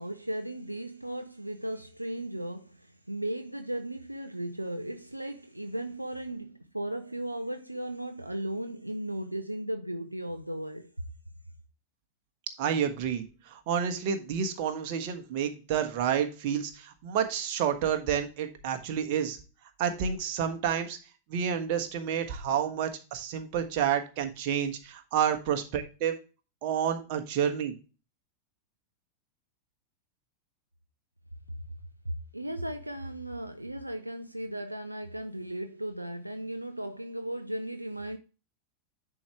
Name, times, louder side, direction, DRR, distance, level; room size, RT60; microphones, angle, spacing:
voice 1, 0.0-10.9 32.3-38.2, right 1 dB, 85° right, 0.5 m, -36 dB
voice 2, 12.6-19.4 19.8-21.0 21.3-26.1 26.6-27.7, right 8 dB, 45° right, 1.4 m, -29 dB
10.0 x 4.9 x 3.4 m
figure-of-eight pair, 90°, 0 cm